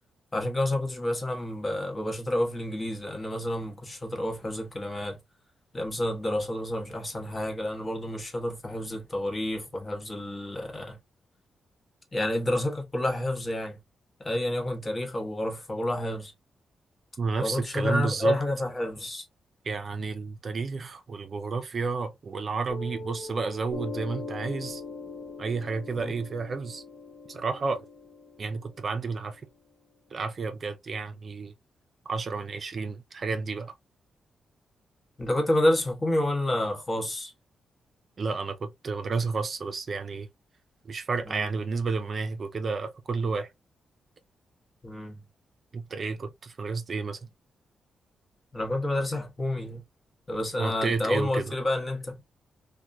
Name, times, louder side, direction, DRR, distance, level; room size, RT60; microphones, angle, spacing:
voice 1, 0.3-5.2 5.7-11.0 12.1-13.8 14.2-16.3 17.4-19.2 26.0-26.1 35.2-37.3 41.2-41.5 44.8-45.3 48.5-49.8 50.3-52.2, left 1 dB, 25° left, 1.0 m, -29 dB
voice 2, 17.2-18.4 19.6-24.8 25.4-26.8 27.3-27.8 28.4-29.4 30.1-31.5 32.1-33.7 38.2-40.3 40.9-43.5 45.7-47.2 50.6-51.5, right 4 dB, 45° right, 0.6 m, -31 dB
Piano, 22.7-29.7, left 4 dB, 45° left, 0.9 m, -41 dB
3.0 x 2.2 x 2.4 m
cardioid pair, 115°, 0 cm